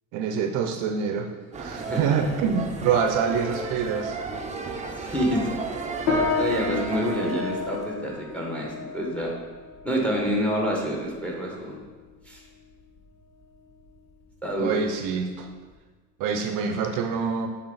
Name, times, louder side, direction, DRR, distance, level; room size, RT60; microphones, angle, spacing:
voice 1, 0.1-1.3 1.6-4.2 14.6-15.5 16.2-17.5, right 6 dB, 60° right, 6 dB, 0.6 m, -26 dB
sound 1, 1.5-7.9, right 4 dB, 20° right, 0.7 m, -34 dB
voice 2, 1.7-2.3 4.9-5.6 6.3-9.3 9.8-11.8 12.3-12.4 14.4-14.8, equal, 5° left, -1 dB, 1.5 m, -28 dB
sound 2, 6.1-15.7, left 4 dB, 80° left, 1.8 m, -33 dB
8.0 x 3.6 x 4.0 m, 1.4 s
supercardioid pair, 110°, 35 cm